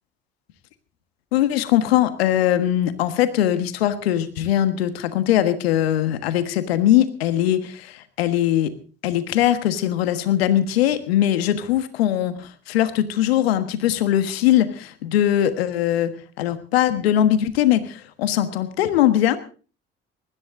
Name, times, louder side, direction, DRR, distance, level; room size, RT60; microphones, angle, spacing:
voice 1, 1.3-8.7 9.0-19.4, left 12 dB, 85° left, 11 dB, 1.5 m, -21 dB
20.0 x 14.0 x 3.7 m, 0.37 s
hypercardioid pair, 55°, 30 cm